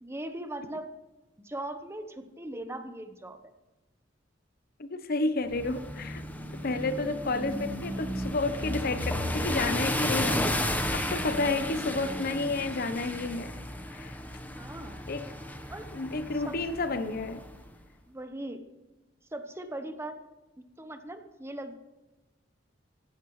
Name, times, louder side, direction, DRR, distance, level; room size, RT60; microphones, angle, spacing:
voice 1, 0.0-0.9 1.4-3.5 14.5-15.0 15.7-15.9 16.4-16.6 18.1-18.6 19.3-20.1 20.8-21.7, right 1 dB, 15° right, 1.0 m, -39 dB
voice 2, 4.8-6.2 6.6-13.5 13.9-14.2 15.1-15.3 15.9-17.4, left 3 dB, 55° left, 0.9 m, -31 dB
sound 1, 5.5-17.6, left 1 dB, 10° left, 1.1 m, -33 dB
15.5 x 15.5 x 3.2 m
head